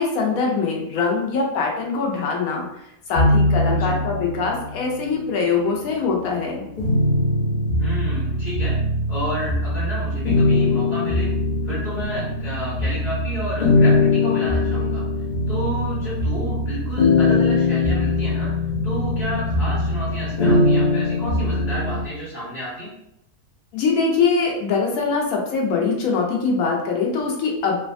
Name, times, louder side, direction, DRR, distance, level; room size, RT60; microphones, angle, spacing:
voice 1, 0.0-2.6 3.1-6.6 23.7-27.8, left 4 dB, 90° left, -1 dB, 1.1 m, -22 dB
sound 1, 3.1-4.9 5.5-22.0, left 2 dB, 70° left, 0.4 m, -21 dB
voice 2, 3.7-4.0 7.8-8.8 9.1-11.3 11.6-15.0 15.5-18.5 18.8-22.9, equal, 35° left, -9 dB, 1.0 m, -31 dB
3.1 x 2.2 x 2.5 m, 0.79 s
omnidirectional pair, 1.5 m